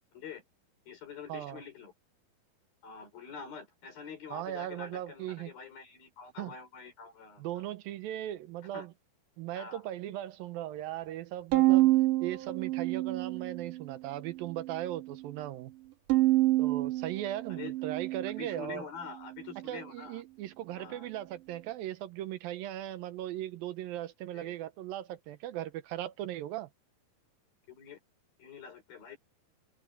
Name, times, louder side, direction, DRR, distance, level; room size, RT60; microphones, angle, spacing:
voice 1, 0.1-0.4 0.9-1.9 2.8-7.7 8.7-8.9 9.6-9.8 17.5-17.7 18.4-20.2 20.7-21.1 24.3-24.6 27.7-28.0 28.4-29.2, left 6 dB, 80° left, 7.0 m, -46 dB
voice 2, 1.3-1.6 4.3-5.5 6.4-6.5 7.4-8.9 9.4-11.9 12.2-15.7 16.6-18.8 19.7-26.7, right 13 dB, 80° right, 2.6 m, -38 dB
Bowed string instrument, 11.5-13.9 14.3-15.1 16.1-18.6, right 17 dB, 65° right, 3.2 m, -28 dB
open air
omnidirectional pair, 4.2 m